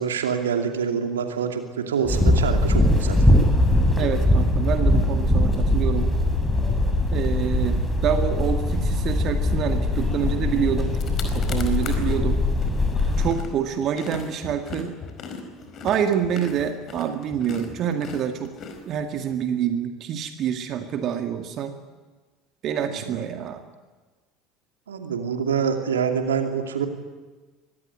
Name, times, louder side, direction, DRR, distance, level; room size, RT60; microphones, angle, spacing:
voice 1, 0.0-3.3 11.8-12.2 22.9-23.2 24.9-26.9, right 6 dB, 75° right, 5 dB, 2.6 m, -26 dB
sound 1, 2.1-13.3, left 1 dB, 10° left, 7.0 m, -21 dB
voice 2, 4.0-6.1 7.1-12.4 13.2-15.0 15.8-18.5 18.9-21.8 22.6-23.6, right 8 dB, 45° right, 6 dB, 2.0 m, -27 dB
sound 2, 10.5-10.6 10.9-12.2 12.6-19.4, left 5 dB, 40° left, 4.6 m, -38 dB
24.0 x 19.5 x 9.6 m, 1.3 s
figure-of-eight pair, 65°, 0 cm